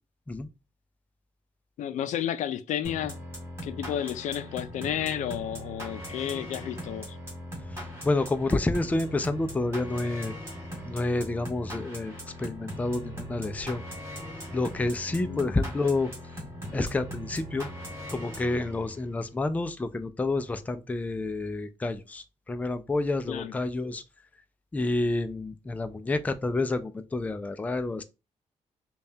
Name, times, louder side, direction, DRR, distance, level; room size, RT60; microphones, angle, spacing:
voice 1, 1.8-3.2 3.6-7.2 15.1-15.5 23.3-23.5, left 10 dB, 80° left, 0.4 m, -32 dB
sound 1, 2.8-19.1, equal, 20° right, 2.1 m, -40 dB
voice 2, 7.7-10.3 10.8-13.8 14.5-16.1 16.7-17.7 18.1-24.0 24.7-28.0, left 2 dB, 10° left, 0.4 m, -29 dB
5.2 x 2.3 x 2.7 m
cardioid pair, 135°, 12 cm